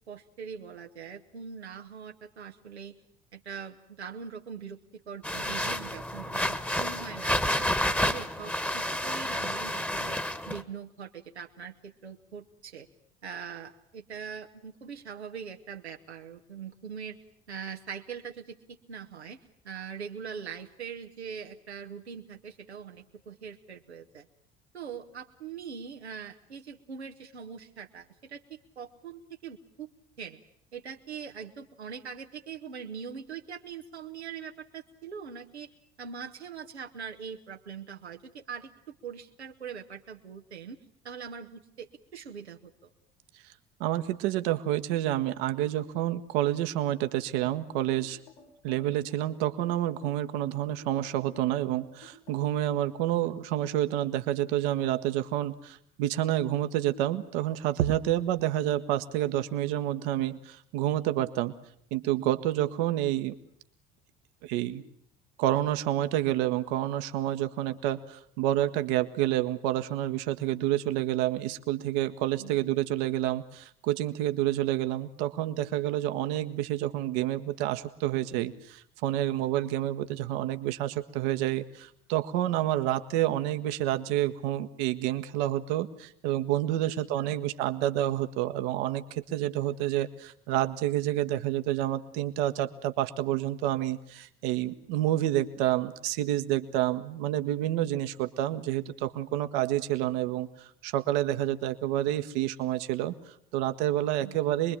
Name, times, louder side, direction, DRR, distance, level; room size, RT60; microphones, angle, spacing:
voice 1, 0.1-3.0 3.3-10.2 10.5-12.9 13.2-17.2 17.5-19.4 19.6-24.3 24.7-29.9 30.2-30.4 30.7-35.7 36.0-40.8 41.0-42.9 72.4-72.6 86.8-86.9 87.2-87.4 104.2-104.4, right 6 dB, 80° right, 3 dB, 1.2 m, -42 dB
sound 1, 5.2-10.6, left 1 dB, 5° left, 1.5 m, -30 dB
voice 2, 43.8-48.2 48.6-61.5 61.9-63.3 64.4-64.8 65.4-104.8, right 13 dB, 60° right, 10 dB, 1.3 m, -29 dB
sound 2, 47.3-52.6, left 4 dB, 70° left, 5.5 m, -52 dB
25.0 x 22.0 x 8.7 m, 0.67 s
figure-of-eight pair, 60°, 32 cm